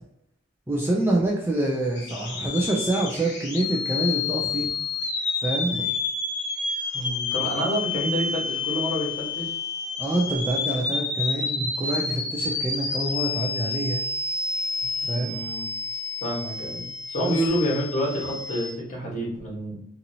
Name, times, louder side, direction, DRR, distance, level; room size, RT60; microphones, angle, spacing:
voice 1, 0.7-4.7 5.4-5.9 10.0-14.0 15.1-15.4 17.2-17.4, right 1 dB, 10° right, -2 dB, 0.3 m, -26 dB
sound 1, 2.0-18.7, left 4 dB, 55° left, 0.7 m, -29 dB
voice 2, 6.9-9.5 15.0-15.6 16.2-19.8, equal, 35° left, -4 dB, 1.1 m, -28 dB
2.7 x 2.6 x 2.7 m, 0.72 s
head